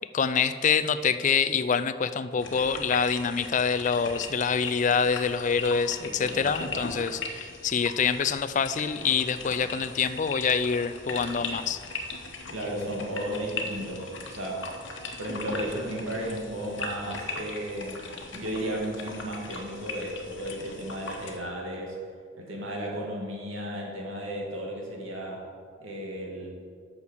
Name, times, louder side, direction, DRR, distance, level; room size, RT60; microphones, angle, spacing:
voice 1, 0.1-11.8, left 6 dB, 35° left, 12 dB, 0.3 m, -26 dB
sound 1, 2.4-21.4, left 3 dB, 65° left, 1.1 m, -39 dB
voice 2, 6.0-6.8 12.5-14.7 15.2-18.0 18.3-22.0 22.4-25.4 25.8-26.5, equal, 80° right, -1 dB, 2.2 m, -34 dB
8.4 x 6.5 x 6.5 m, 2.1 s
head